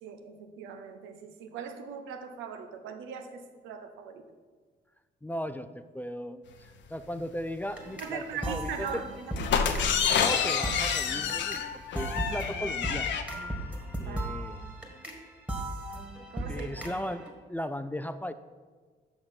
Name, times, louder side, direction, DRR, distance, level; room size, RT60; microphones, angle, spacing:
voice 1, 0.0-4.2 8.0-9.3 14.1-14.3 16.3-16.9, right 6 dB, 85° right, 7 dB, 0.8 m, -40 dB
voice 2, 5.2-9.0 10.1-13.2 14.0-14.6 16.5-18.3, left 1 dB, 10° left, 11 dB, 0.4 m, -37 dB
sound 1, 7.6-17.3, right 1 dB, 5° right, 1.7 m, -37 dB
sound 2, 9.4-13.2, left 7 dB, 70° left, 0.7 m, -28 dB
6.7 x 5.7 x 5.9 m, 1.5 s
supercardioid pair, 60°, 19 cm